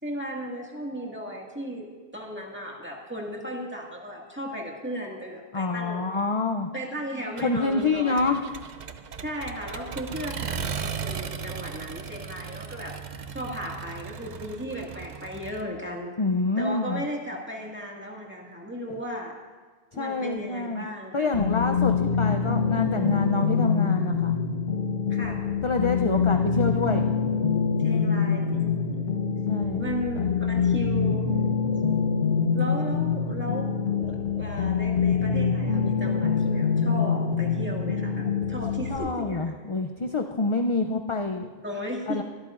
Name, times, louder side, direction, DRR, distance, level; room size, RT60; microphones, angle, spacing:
voice 1, 0.0-6.1 6.7-8.3 9.2-12.9 13.3-16.1 16.6-19.3 19.9-21.4 21.8-22.1 25.1-25.4 26.4-26.7 27.8-29.3 29.8-31.2 32.5-39.4 41.6-42.2, equal, 10° right, -2 dB, 1.9 m, -36 dB
voice 2, 5.5-6.7 7.4-8.4 16.2-17.0 18.9-19.0 19.9-20.9 21.1-24.4 25.6-27.1 29.5-29.9 30.2-30.3 38.9-41.5 42.1-42.2, left 3 dB, 40° left, 5 dB, 0.5 m, -27 dB
Accelerating revving vroom, 7.4-15.6, right 6 dB, 50° right, 0.7 m, -37 dB
sound 1, 21.3-39.0, left 6 dB, 90° left, 1.4 m, -25 dB
23.0 x 13.0 x 2.5 m, 1.4 s
omnidirectional pair, 1.1 m